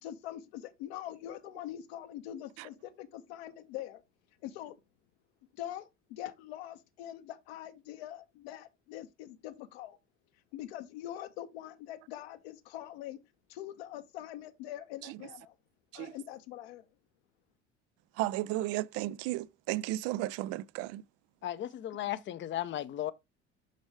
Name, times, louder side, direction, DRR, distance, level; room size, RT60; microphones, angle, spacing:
voice 1, 0.0-4.0 4.4-4.8 5.5-10.0 10.5-13.2 13.5-15.5 15.9-16.9, left 12 dB, 60° left, 1.1 m, -43 dB
voice 2, 18.2-21.0, right 16 dB, 45° right, 0.5 m, -34 dB
voice 3, 21.4-23.1, left 12 dB, 35° left, 0.7 m, -35 dB
6.5 x 6.2 x 3.3 m
figure-of-eight pair, 60°, 35 cm